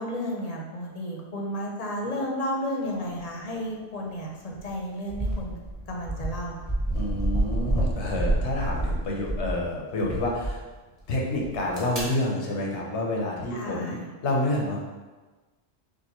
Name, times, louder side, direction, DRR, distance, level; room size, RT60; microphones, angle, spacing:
voice 1, 0.0-5.5 5.9-6.6 13.5-14.1, equal, 40° left, -1 dB, 0.8 m, -32 dB
sound 1, 4.5-4.7 5.1-9.6 10.0-10.5 11.4-12.0, right 1 dB, 15° right, 1.4 m, -28 dB
voice 2, 6.9-10.6 11.1-14.0 14.2-14.9, left 1 dB, 85° left, -1 dB, 1.2 m, -28 dB
6.7 x 2.5 x 3.0 m, 1.3 s
omnidirectional pair, 1.1 m